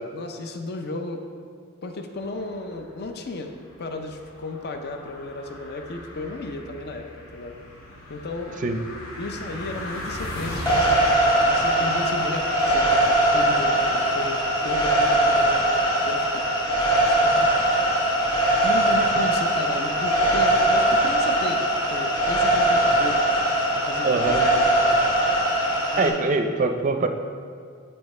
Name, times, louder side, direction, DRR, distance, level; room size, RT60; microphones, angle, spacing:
voice 1, 0.1-1.2 1.8-3.5 3.8-7.1 7.3-7.6 8.1-8.5 9.2-11.0 11.4-15.6 16.1-16.4 16.9-17.5 18.6-21.6 21.9-23.2 23.7-24.7 25.9-26.2, left 2 dB, 50° left, 5 dB, 0.6 m, -34 dB
sound 1, 2.1-20.7, left 1 dB, 80° left, 1.9 m, -39 dB
sound 2, 10.7-26.1, right 1 dB, 20° left, 1.3 m, -21 dB
voice 2, 24.0-24.4 26.0-27.1, right 3 dB, 35° right, 6 dB, 0.5 m, -23 dB
13.0 x 4.4 x 3.2 m, 2.2 s
head